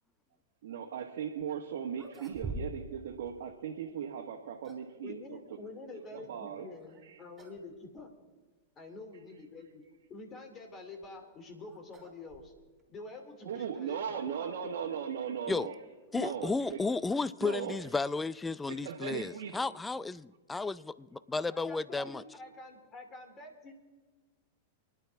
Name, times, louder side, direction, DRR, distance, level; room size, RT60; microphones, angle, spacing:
voice 1, 0.6-5.2 6.1-6.7 7.0-7.2 13.4-15.8 16.1-16.8 17.4-17.7 18.7-19.6, right 8 dB, 70° right, 1.4 m, -38 dB
sound 1, 1.4-1.5 1.9-3.0 3.3-3.4 4.2-5.0 6.8-7.0 7.4-7.7 8.0-8.1 8.8-8.9 10.7-12.8, right 2 dB, 20° right, 3.7 m, -45 dB
voice 2, 5.0-8.1 8.8-9.8 10.1-12.5 12.9-14.9 21.5-23.8, left 2 dB, 30° left, 2.8 m, -47 dB
voice 3, 16.1-22.2, left 3 dB, 10° left, 0.5 m, -33 dB
29.5 x 10.5 x 3.5 m
hypercardioid pair, 105°, 0 cm